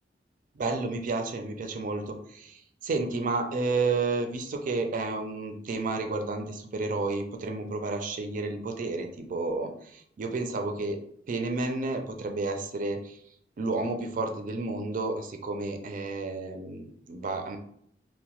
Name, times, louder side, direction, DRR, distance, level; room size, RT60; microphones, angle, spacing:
voice 1, 0.6-11.0 11.3-13.2 13.6-17.6, right 3 dB, 50° right, 6 dB, 0.4 m, -31 dB
2.8 x 2.1 x 2.9 m, 0.67 s
head